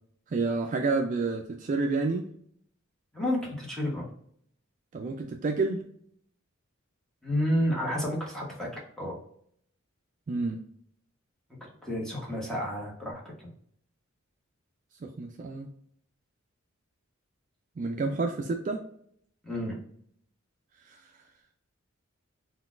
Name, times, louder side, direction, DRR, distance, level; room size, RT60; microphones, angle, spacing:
voice 1, 0.3-2.3 4.9-5.8 10.3-10.6 15.0-15.7 17.8-18.8 20.9-21.0, right 3 dB, 40° right, 3 dB, 0.3 m, -29 dB
voice 2, 3.1-4.1 7.2-8.7 9.0-9.1 11.6-13.2 19.4-19.8, equal, 5° left, -4 dB, 1.0 m, -30 dB
3.8 x 2.3 x 2.4 m, 0.64 s
head